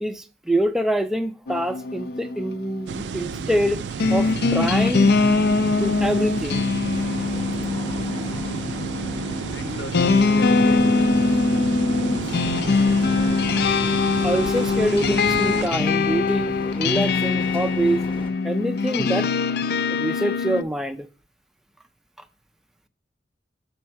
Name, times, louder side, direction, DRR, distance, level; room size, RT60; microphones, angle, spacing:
voice 1, 0.0-3.8 4.1-5.2 5.6-6.7 14.2-18.0 18.4-19.3 19.9-21.1, right 1 dB, 5° right, 0.4 m, -25 dB
sound 1, 1.5-20.6, left 4 dB, 65° left, 0.4 m, -22 dB
sound 2, 2.9-15.7, right 6 dB, 75° right, 0.4 m, -32 dB
sound 3, 6.9-18.3, left 1 dB, 30° left, 0.8 m, -37 dB
voice 2, 9.5-11.7, left 3 dB, 80° left, 0.8 m, -39 dB
6.3 x 4.4 x 5.7 m
head